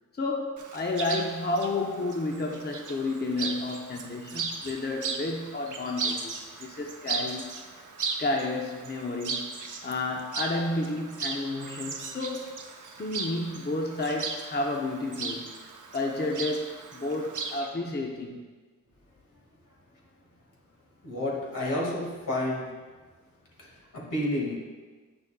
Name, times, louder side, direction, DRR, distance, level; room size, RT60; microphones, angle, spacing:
voice 1, 0.1-7.5 8.2-9.5 9.8-12.5 13.0-18.5, left 2 dB, 30° left, 1 dB, 0.7 m, -31 dB
Chirp tweet, 0.6-17.7, right 4 dB, 65° right, 0.8 m, -37 dB
voice 2, 21.0-22.7 23.6-24.6, left 1 dB, 70° left, -3 dB, 2.1 m, -30 dB
9.2 x 6.1 x 2.3 m, 1.4 s
cardioid pair, 55°, 33 cm